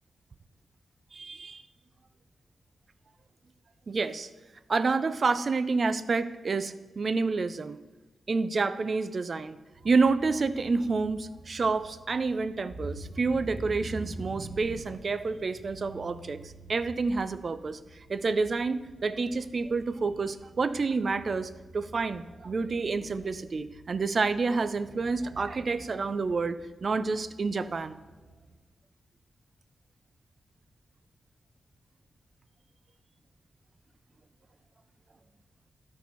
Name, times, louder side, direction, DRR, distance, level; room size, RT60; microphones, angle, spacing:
voice 1, 1.1-1.6 3.9-4.3 4.7-7.8 8.3-9.6 9.8-16.4 16.7-28.0, right 4 dB, 50° right, 14 dB, 0.5 m, -29 dB
sound 1, 9.7-28.5, right 2 dB, 80° right, 4.0 m, -47 dB
12.0 x 4.5 x 6.8 m, 1.2 s
wide cardioid pair, 105°, 0 cm